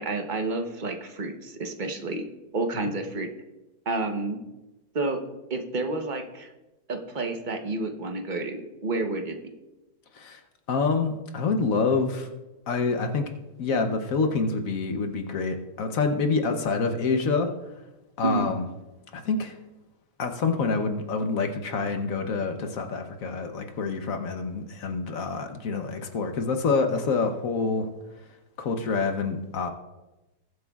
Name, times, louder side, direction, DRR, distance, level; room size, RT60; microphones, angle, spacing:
voice 1, 0.0-2.2 2.5-3.3 3.9-4.4 4.9-5.2 5.5-6.5 6.9-9.5 18.2-18.6, right 2 dB, 35° right, 4 dB, 0.8 m, -30 dB
voice 2, 10.7-12.3 12.7-13.3 13.6-17.5 18.2-18.6 19.1-19.6 20.2-27.9 28.6-29.7, left 4 dB, 60° left, 6 dB, 1.1 m, -27 dB
20.5 x 7.9 x 2.3 m, 1.1 s
omnidirectional pair, 1.7 m